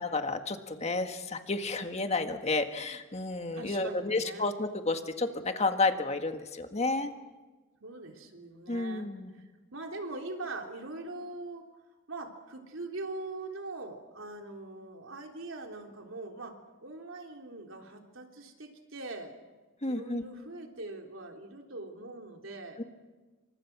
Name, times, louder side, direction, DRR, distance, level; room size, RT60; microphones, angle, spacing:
voice 1, 0.0-7.1 8.7-9.3 19.8-20.2 22.8-22.9, left 3 dB, 30° left, 6 dB, 1.7 m, -31 dB
voice 2, 3.5-4.5 7.8-9.1 9.3-9.4 9.7-11.6 12.1-19.4 19.9-22.8, right 2 dB, 75° right, 3 dB, 3.5 m, -42 dB
29.0 x 25.0 x 6.1 m, 1.3 s
head